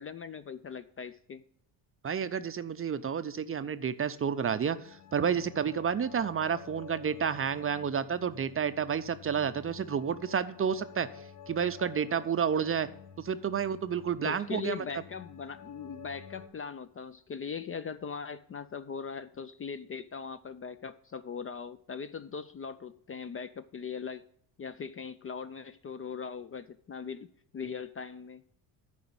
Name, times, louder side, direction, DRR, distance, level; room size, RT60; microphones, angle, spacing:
voice 1, 0.0-1.4 14.2-24.2 24.6-27.3 27.5-28.4, left 6 dB, 30° left, 13 dB, 0.4 m, -40 dB
voice 2, 2.0-12.9 13.2-14.8, right 7 dB, 30° right, 12 dB, 0.5 m, -30 dB
sound 1, 4.3-16.5, left 7 dB, 90° left, 1.4 m, -51 dB
9.4 x 5.0 x 6.9 m, 0.67 s
supercardioid pair, 75°, 48 cm